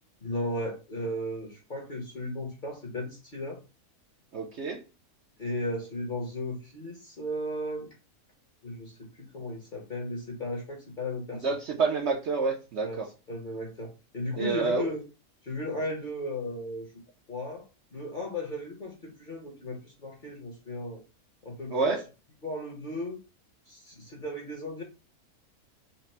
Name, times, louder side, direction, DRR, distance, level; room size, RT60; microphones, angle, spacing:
voice 1, 0.2-3.6 5.4-7.9 8.6-11.4 12.8-15.0 15.4-16.9 17.3-17.6 17.9-21.0 21.4-22.0 22.4-23.2 23.7-24.8, left 1 dB, 40° left, 0 dB, 0.8 m, -35 dB
voice 2, 4.3-4.8 11.3-13.1 14.4-14.9 21.7-22.0, right 4 dB, 60° right, 1 dB, 0.8 m, -28 dB
4.1 x 2.0 x 4.1 m, 0.30 s
omnidirectional pair, 1.6 m